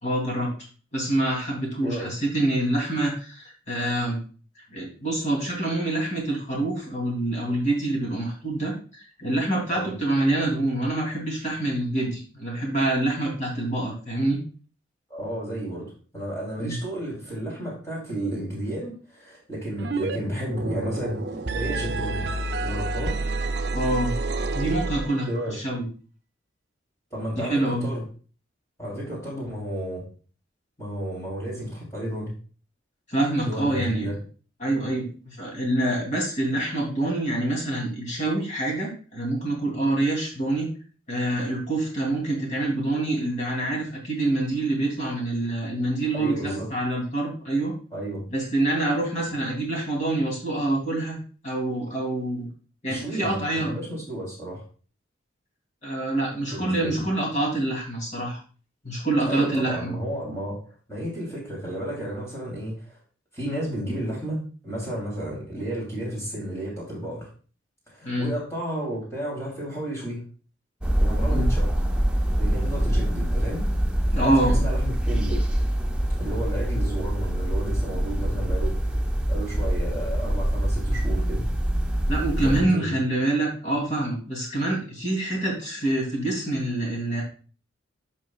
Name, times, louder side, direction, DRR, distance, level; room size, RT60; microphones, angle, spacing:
voice 1, 0.0-0.5 0.9-4.2 4.7-14.4 16.6-16.8 23.7-24.1 24.5-25.9 27.3-27.9 33.1-34.1 34.6-40.7 41.1-47.7 48.3-51.2 51.4-52.4 52.8-53.7 55.8-58.4 58.8-59.9 68.0-68.3 71.3-71.5 74.1-74.6 82.1-87.2, right 1 dB, 35° left, -2 dB, 3.1 m, -26 dB
voice 2, 15.1-22.2 22.6-23.1 25.3-25.6 27.1-28.1 28.8-30.0 30.8-32.3 33.4-34.1 46.1-46.7 47.9-48.2 52.9-54.6 56.5-57.1 59.3-60.6 60.9-63.0 63.3-67.3 67.9-70.2 71.0-71.7 72.4-73.6 74.1-75.4 76.2-78.8 79.3-81.5 82.3-82.9, right 1 dB, 15° left, -5 dB, 3.3 m, -32 dB
sound 1, 19.8-20.2 20.4-25.4, right 3 dB, 60° right, 0.7 m, -29 dB
sound 2, 70.8-82.6, right 1 dB, 5° right, 0.7 m, -24 dB
11.0 x 5.5 x 2.4 m, 0.39 s
head